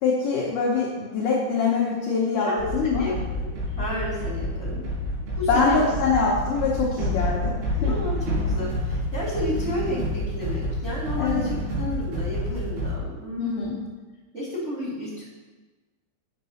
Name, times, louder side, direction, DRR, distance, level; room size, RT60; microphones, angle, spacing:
voice 1, 0.0-3.1 5.5-7.5 7.8-7.9 11.2-11.5 13.4-13.7, left 4 dB, 85° left, -4 dB, 1.8 m, -24 dB
voice 2, 2.4-4.8 5.3-5.8 7.8-13.7 14.3-15.2, left 1 dB, 20° right, -8 dB, 2.3 m, -32 dB
sound 1, 2.6-13.0, left 1 dB, 80° right, 5.2 m, -28 dB
8.1 x 6.6 x 5.7 m, 1.2 s
omnidirectional pair, 5.5 m